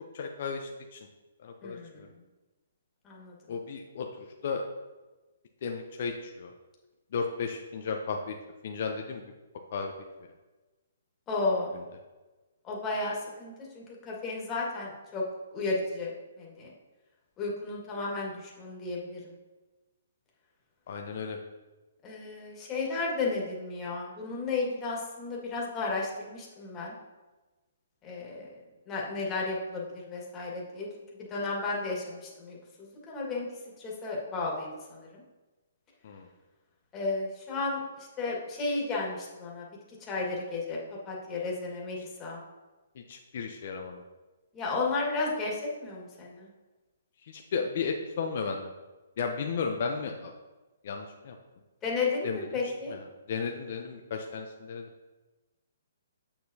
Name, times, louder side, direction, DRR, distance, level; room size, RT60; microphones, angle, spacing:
voice 1, 0.1-1.0 1.4-2.1 3.5-4.6 5.6-6.5 7.1-8.3 8.6-9.2 9.7-9.9 20.9-21.4 36.0-36.3 43.1-44.0 47.3-48.7 49.2-50.3 50.8-51.4 52.2-52.6 52.9-54.9, left 5 dB, 55° left, 3 dB, 0.7 m, -34 dB
voice 2, 1.6-2.0 3.0-3.3 11.3-11.8 12.6-15.2 15.5-16.1 16.4-16.7 17.4-19.3 22.0-26.9 28.0-28.6 28.9-30.9 31.3-33.5 33.8-35.2 36.9-39.6 40.0-40.8 41.0-42.4 44.5-46.5 51.8-52.9, left 3 dB, 20° left, -3 dB, 1.9 m, -33 dB
7.5 x 6.8 x 2.8 m, 1.2 s
hypercardioid pair, 140°, 0 cm